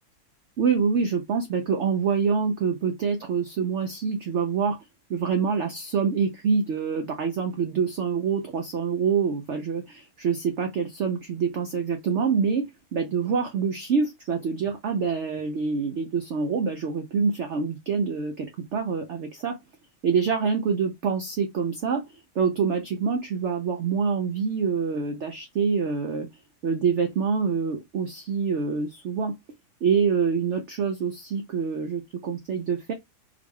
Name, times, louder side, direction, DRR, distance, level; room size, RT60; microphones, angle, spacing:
voice 1, 0.6-4.8 5.1-19.6 20.0-26.3 26.6-29.3 29.8-32.9, right 5 dB, 60° right, 0.8 m, -26 dB
3.8 x 3.1 x 2.2 m
omnidirectional pair, 1.7 m